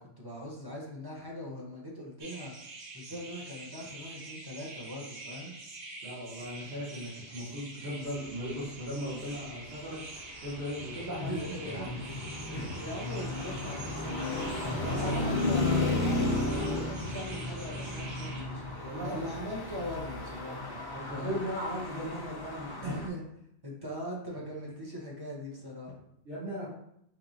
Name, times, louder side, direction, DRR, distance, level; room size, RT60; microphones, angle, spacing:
voice 1, 0.0-2.5 2.9-5.5 11.2-12.2 12.5-18.7 19.0-20.8 21.1-21.4 22.8-23.2 23.6-26.1, equal, 25° right, -3 dB, 0.6 m, -40 dB
sound 1, 2.2-18.4, right 3 dB, 80° right, 1.1 m, -46 dB
voice 2, 6.0-10.0 10.4-11.3 11.6-12.0 14.6-15.3 18.3-18.4 18.8-19.3 20.9-23.0 26.2-26.7, equal, 60° right, -11 dB, 1.4 m, -38 dB
Traffic noise roadway noise, 9.4-23.1, left 2 dB, 35° left, 0.4 m, -34 dB
4.4 x 3.0 x 2.6 m, 0.75 s
omnidirectional pair, 1.1 m